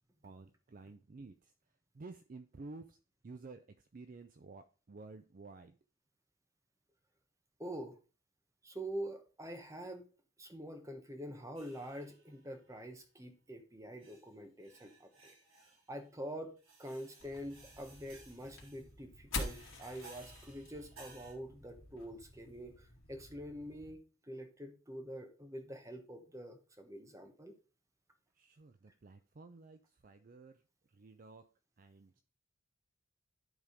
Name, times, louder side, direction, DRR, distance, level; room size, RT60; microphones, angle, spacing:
voice 1, 0.2-1.5 1.9-3.0 3.2-3.6 3.9-5.7 28.4-30.6 30.9-31.5 31.8-32.1, right 3 dB, 40° right, 9 dB, 0.4 m, -52 dB
voice 2, 7.6-8.0 8.6-10.1 10.4-15.3 15.9-27.5, equal, 15° right, 5 dB, 1.1 m, -46 dB
sound 1, 11.6-12.4 13.2-13.3 14.0-14.3 14.6-15.9 16.6-18.9 19.4-21.3, right 3 dB, 90° right, 4.2 m, -58 dB
sound 2, 17.2-23.9, left 3 dB, 70° left, 2.2 m, -47 dB
11.0 x 3.7 x 5.0 m, 0.35 s
head